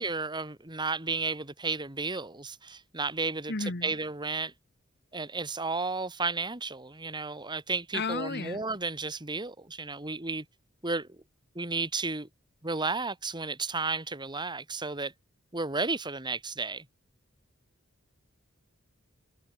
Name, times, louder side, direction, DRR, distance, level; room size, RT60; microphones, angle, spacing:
voice 1, 0.0-4.5 5.1-10.5 10.8-11.1 11.6-12.3 12.6-15.1 15.5-16.9, right 3 dB, 20° right, 2.3 m, -33 dB
voice 2, 3.5-3.9 7.9-8.6, left 3 dB, 55° left, 1.7 m, -33 dB
head